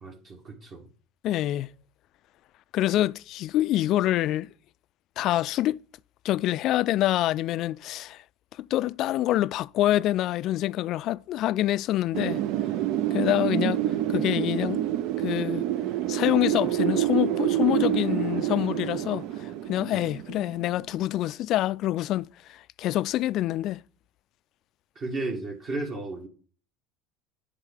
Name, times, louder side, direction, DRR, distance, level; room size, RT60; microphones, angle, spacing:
voice 1, 0.0-0.9 19.9-20.0 25.0-26.3, right 2 dB, 45° right, 1.8 m, -34 dB
voice 2, 1.2-1.7 2.7-4.5 5.2-5.8 6.2-8.2 8.6-12.4 13.1-14.8 15.2-15.6 16.1-23.8, left 14 dB, 55° left, 0.3 m, -26 dB
Wind, 12.1-20.9, right 13 dB, 60° right, 0.4 m, -27 dB
7.9 x 3.7 x 6.4 m
hypercardioid pair, 85°, 0 cm